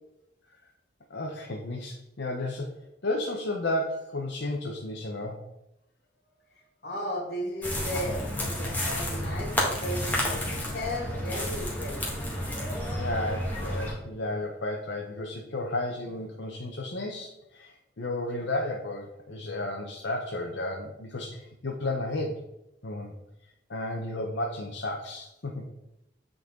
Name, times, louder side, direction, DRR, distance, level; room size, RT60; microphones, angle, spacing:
voice 1, 1.1-2.7 3.0-5.4 13.0-22.4 22.8-23.1 23.7-25.6, left 2 dB, 75° left, -1 dB, 0.9 m, -33 dB
voice 2, 6.8-9.6 9.8-12.0, equal, 60° left, -2 dB, 2.7 m, -35 dB
sound 1, 7.6-13.9, equal, 10° left, 1.6 m, -31 dB
8.8 x 4.0 x 3.8 m, 0.87 s
head